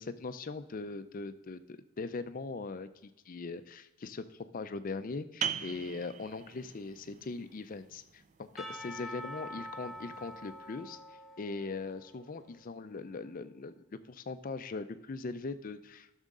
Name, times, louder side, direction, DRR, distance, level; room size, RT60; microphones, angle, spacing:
voice 1, 0.0-11.0 11.4-16.2, left 3 dB, 40° left, 12 dB, 0.4 m, -40 dB
sound 1, 5.4-10.8, right 7 dB, 35° right, 0.3 m, -42 dB
Percussion / Church bell, 8.6-12.5, left 1 dB, ahead, 0.9 m, -45 dB
13.0 x 6.3 x 3.7 m, 0.97 s
head